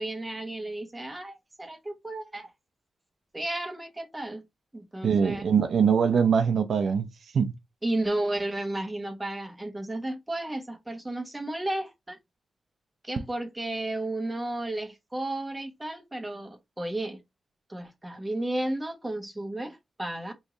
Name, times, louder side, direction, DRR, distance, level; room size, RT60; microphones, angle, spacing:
voice 1, 0.0-2.5 3.3-4.4 4.7-5.5 7.8-12.2 13.0-17.2 17.7-20.3, right 1 dB, 15° right, 1.1 m, -33 dB
voice 2, 5.0-7.1 7.3-7.5, right 6 dB, 80° right, 0.6 m, -22 dB
3.1 x 2.7 x 3.7 m
wide cardioid pair, 90°, 0 cm